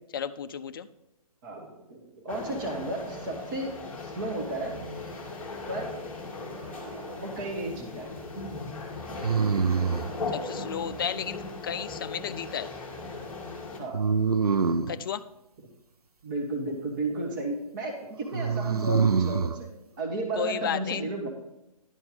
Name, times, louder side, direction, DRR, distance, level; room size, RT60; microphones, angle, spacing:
voice 1, 0.1-0.9 10.3-12.7 14.9-15.2 20.4-21.0, left 8 dB, 35° left, 12 dB, 0.4 m, -33 dB
voice 2, 1.4-3.7 4.0-4.7 5.7-6.0 6.8-8.1 13.8-14.0 16.2-19.7 20.0-21.3, right 2 dB, 35° right, 2 dB, 1.3 m, -33 dB
sound 1, 2.3-13.8, left 3 dB, 5° left, 1.5 m, -38 dB
sound 2, 6.5-7.2 9.2-10.2 13.9-15.0 18.3-19.6, right 5 dB, 90° right, 0.5 m, -25 dB
11.0 x 4.5 x 5.2 m, 0.92 s
figure-of-eight pair, 135°, 19 cm